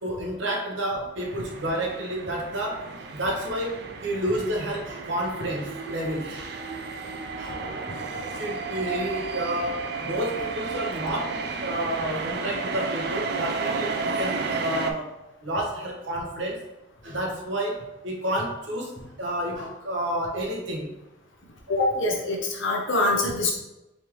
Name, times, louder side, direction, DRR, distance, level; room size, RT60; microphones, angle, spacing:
voice 1, 0.0-6.5 7.4-7.5 8.3-15.1 15.4-16.6 17.0-20.9 21.7-21.9, right 1 dB, 70° right, -1 dB, 1.0 m, -30 dB
sound 1, 1.2-14.9, right 4 dB, 55° right, 0.4 m, -32 dB
voice 2, 21.7-23.5, left 2 dB, 80° left, 0 dB, 0.9 m, -24 dB
4.2 x 3.4 x 3.0 m, 0.93 s
head